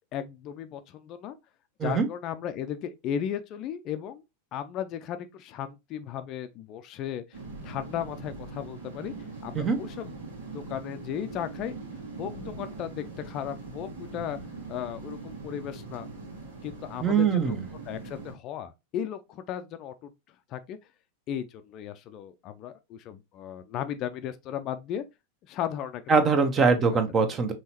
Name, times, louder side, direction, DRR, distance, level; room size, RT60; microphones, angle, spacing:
voice 1, 0.1-1.4 1.8-4.2 4.5-7.4 7.6-9.1 9.4-10.1 10.5-11.7 12.2-14.4 14.7-16.1 16.6-17.5 17.9-20.1 20.5-20.8 21.3-25.0 25.5-26.0, left 9 dB, 40° left, 0.5 m, -35 dB
sound 1, 7.3-18.3, right 3 dB, 70° right, 1.9 m, -41 dB
voice 2, 17.0-17.6 26.1-27.5, right 5 dB, 25° right, 1.0 m, -22 dB
5.4 x 3.1 x 2.9 m
figure-of-eight pair, 90°, 0 cm